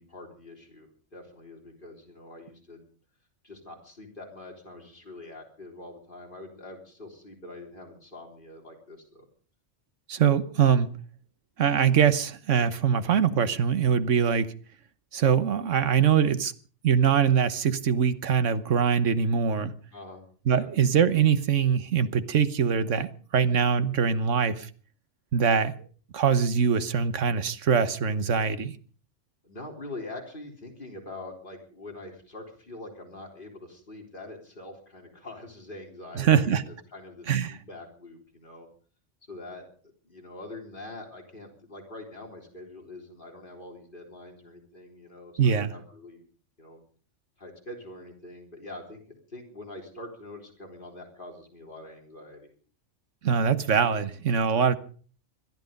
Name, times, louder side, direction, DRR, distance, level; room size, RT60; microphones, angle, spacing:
voice 1, 0.0-2.8 3.4-9.3 19.9-20.2 20.5-20.7 29.4-38.7 39.3-39.6 40.0-46.2 46.6-46.8 47.4-52.5, left 2 dB, 45° left, 3.9 m, -44 dB
voice 2, 10.1-10.9 11.6-14.5 15.1-16.5 16.8-19.7 20.5-24.7 25.3-25.8 26.1-28.8 36.1-36.6 37.3-37.6 45.4-45.7 53.2-54.8, right 7 dB, 80° right, 1.4 m, -23 dB
21.5 x 13.0 x 5.2 m
omnidirectional pair, 1.2 m